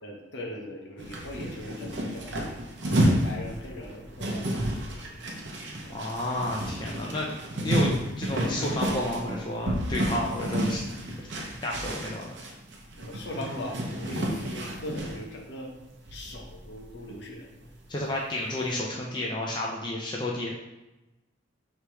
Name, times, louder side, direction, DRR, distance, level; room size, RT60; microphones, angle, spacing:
voice 1, 0.0-5.4 13.0-15.7 16.1-17.5, left 1 dB, 60° left, 0 dB, 0.7 m, -40 dB
sound 1, 1.0-15.2 15.8-15.9 16.1-17.3 17.6-17.8, right 1 dB, 65° right, 0.7 m, -31 dB
voice 2, 5.9-7.3 7.6-10.8 11.2-12.4 17.9-20.5, left 1 dB, 25° left, -2 dB, 0.4 m, -31 dB
3.3 x 2.9 x 4.6 m, 1.0 s
head